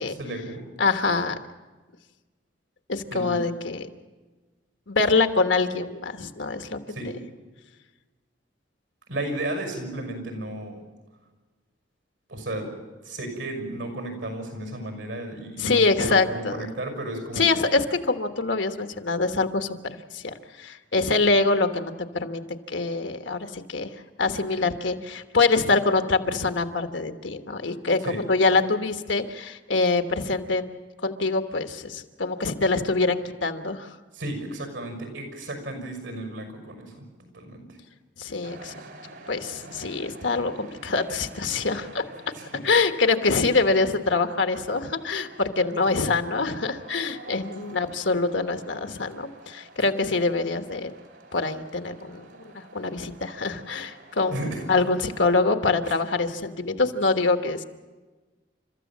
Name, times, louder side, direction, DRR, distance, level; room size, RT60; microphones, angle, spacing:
voice 1, 0.2-0.7 3.1-3.4 6.9-7.1 9.1-10.8 12.3-12.7 13.0-17.5 28.0-28.2 34.1-37.8 42.3-42.5 45.6-46.2 54.3-54.6 56.7-56.8, right 1 dB, 85° right, 5 dB, 5.9 m, -34 dB
voice 2, 0.8-1.4 2.9-3.9 4.9-6.8 15.6-16.7 17.4-19.7 20.1-21.9 22.2-22.4 22.7-23.9 24.2-28.0 28.3-30.7 31.0-33.9 38.2-38.7 39.3-42.0 42.6-50.9 51.3-57.6, left 3 dB, 80° left, 7 dB, 1.3 m, -24 dB
sound 1, 38.4-55.2, right 2 dB, 70° right, 2.7 m, -48 dB
30.0 x 14.0 x 7.4 m, 1.3 s
head